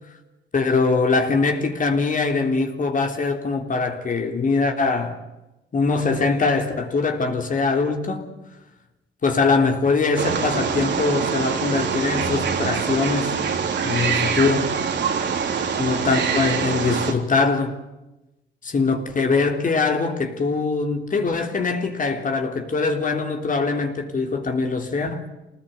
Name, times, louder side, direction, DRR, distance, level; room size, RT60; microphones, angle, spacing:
voice 1, 0.5-5.2 5.7-8.3 9.2-13.4 13.8-14.7 15.8-17.8 18.6-25.3, left 4 dB, 40° left, 3.4 m, -22 dB
Wild animals, 10.2-17.1, right 6 dB, 65° right, 3.6 m, -24 dB
25.5 x 19.5 x 9.3 m
cardioid pair, 90°, 20 cm